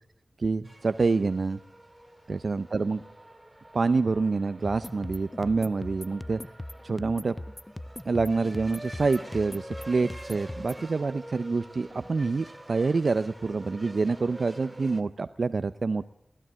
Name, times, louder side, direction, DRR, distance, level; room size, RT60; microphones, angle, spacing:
voice 1, 0.4-1.6 2.3-3.0 3.7-6.5 6.8-7.3 8.0-16.0, right 4 dB, 65° right, 12 dB, 0.7 m, -27 dB
sound 1, 0.6-15.0, right 1 dB, 15° right, 2.2 m, -47 dB
sound 2, 4.6-10.8, left 1 dB, 20° left, 0.7 m, -40 dB
22.5 x 16.5 x 7.5 m, 0.77 s
wide cardioid pair, 65°, 0 cm